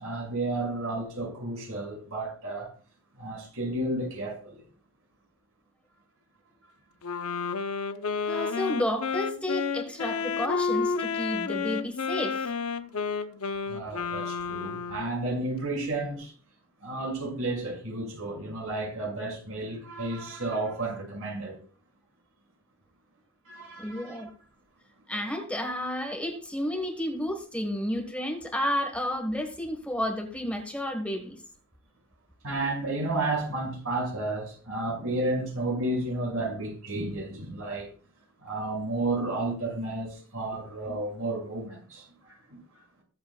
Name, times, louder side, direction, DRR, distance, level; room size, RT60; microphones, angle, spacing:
voice 1, 0.0-2.7 3.2-4.6 13.6-16.3 16.8-21.6 23.4-24.2 32.4-37.9 38.4-42.8, right 2 dB, 70° right, 6.2 m, -32 dB
Wind instrument woodwind instrument, 7.0-15.3, left 5 dB, 70° left, 0.8 m, -31 dB
voice 2, 8.2-12.5 23.8-24.3 25.1-31.4, left 1 dB, 5° left, 1.4 m, -31 dB
22.0 x 8.0 x 2.4 m
head